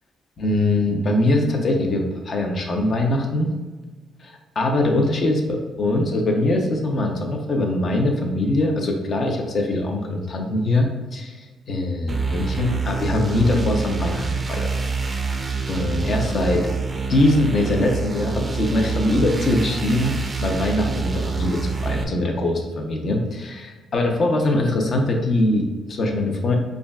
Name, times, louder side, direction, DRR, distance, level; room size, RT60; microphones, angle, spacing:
voice 1, 0.4-3.5 4.2-14.7 15.7-16.7 17.1-26.6, left 1 dB, 50° left, 2 dB, 0.7 m, -22 dB
sound 1, 12.1-22.0, right 4 dB, 30° right, 0.4 m, -26 dB
4.9 x 2.4 x 2.3 m, 1.3 s
cardioid pair, 90°, 0 cm